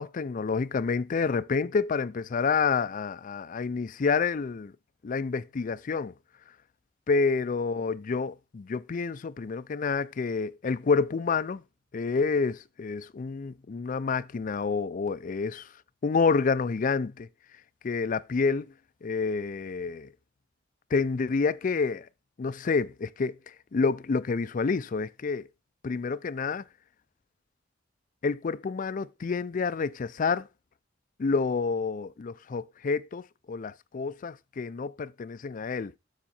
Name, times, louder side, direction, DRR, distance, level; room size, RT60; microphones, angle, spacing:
voice 1, 0.0-4.7 5.0-6.1 7.1-11.6 11.9-15.7 16.0-17.3 17.8-18.7 19.0-20.1 20.9-22.1 22.4-25.5 25.8-26.6 28.2-30.5 31.2-35.9, left 4 dB, 45° left, 0.4 m, -28 dB
7.4 x 6.1 x 4.3 m
head